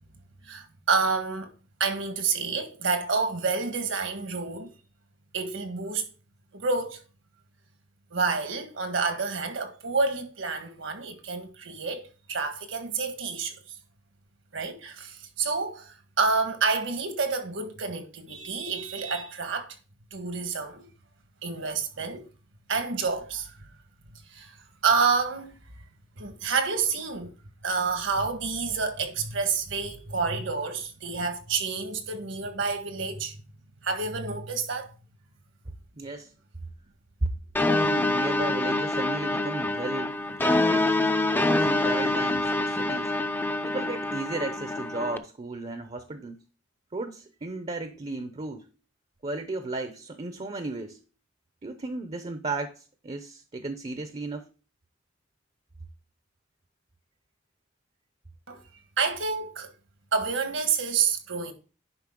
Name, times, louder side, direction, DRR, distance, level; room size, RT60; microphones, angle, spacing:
voice 1, 0.5-1.5 1.8-4.7 5.3-6.1 6.5-7.0 8.1-13.6 14.5-19.8 20.1-20.9 21.4-22.3 22.7-23.5 24.3-24.5 24.8-25.6 26.2-27.3 27.6-33.4 33.8-34.9 58.5-58.6 59.0-59.7 60.1-61.5, right 4 dB, 75° right, 1.6 m, -28 dB
voice 2, 36.0-36.3 37.2-37.3 37.8-40.9 41.3-43.1 43.6-46.4 46.9-48.7 49.2-51.0 51.6-54.5, right 2 dB, 35° right, 0.7 m, -34 dB
sound 1, 37.6-45.2, left 2 dB, 10° left, 0.6 m, -26 dB
10.5 x 5.2 x 3.8 m
head